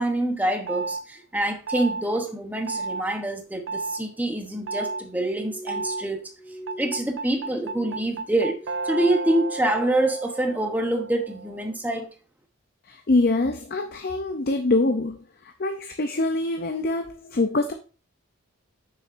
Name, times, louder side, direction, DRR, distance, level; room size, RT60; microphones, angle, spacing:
voice 1, 0.0-6.2 6.8-8.6 8.8-12.1, right 1 dB, 10° right, 0.9 m, -26 dB
sound 1, 0.7-1.0 1.7-2.0 2.7-3.0 3.7-4.0 4.7-5.0 5.7-6.0 6.7-11.7, right 3 dB, 55° right, 0.5 m, -32 dB
Glass, 4.5-9.1 9.4-10.1 10.5-11.0 11.6-11.9, equal, 20° left, 1.3 m, -43 dB
voice 2, 12.9-17.7, left 2 dB, 45° left, 0.5 m, -24 dB
7.2 x 6.4 x 2.6 m
head